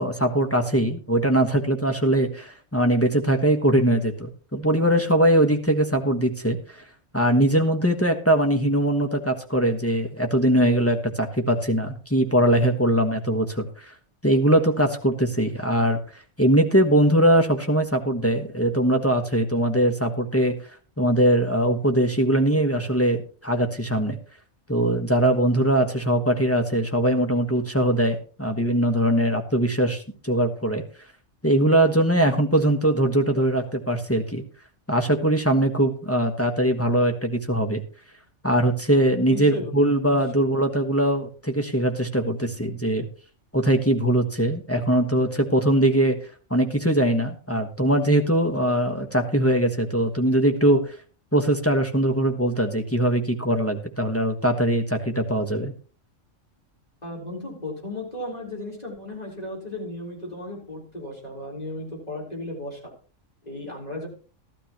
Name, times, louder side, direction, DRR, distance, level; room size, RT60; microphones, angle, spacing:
voice 1, 0.0-6.8 7.1-13.9 14.2-16.0 16.4-20.6 21.0-24.2 24.7-30.8 31.4-34.4 34.9-37.8 38.4-43.1 43.5-46.2 46.5-50.9 51.3-55.7, right 1 dB, 10° left, 3 dB, 1.3 m, -21 dB
voice 2, 39.3-39.8 40.1-40.2 57.0-62.8 63.4-64.1, left 1 dB, 30° left, -2 dB, 4.3 m, -35 dB
14.5 x 12.5 x 3.0 m, 0.38 s
omnidirectional pair, 1.3 m